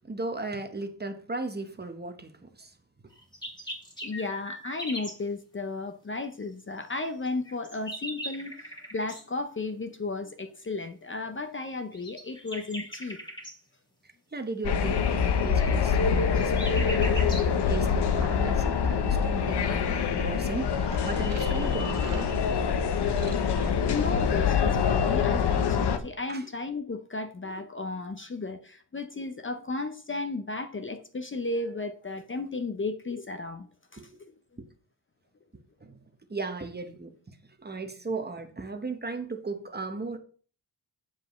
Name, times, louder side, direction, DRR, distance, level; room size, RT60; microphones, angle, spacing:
voice 1, 0.0-2.7 14.3-17.1 17.7-22.3 23.0-23.1 26.3-26.4 34.0-34.1 35.8-36.0 36.3-40.2, right 3 dB, 25° right, 1.0 m, -36 dB
sound 1, 3.1-5.2 7.2-9.2 11.9-13.6 15.9-17.5, equal, 10° left, 2.0 m, -39 dB
voice 2, 4.0-13.2 23.8-34.0, left 3 dB, 30° left, 0.6 m, -34 dB
sound 2, 14.6-26.0, left 6 dB, 70° left, 0.9 m, -25 dB
sound 3, 14.8-24.3, right 5 dB, 85° right, 1.5 m, -46 dB
7.6 x 7.1 x 3.1 m
wide cardioid pair, 105°, 42 cm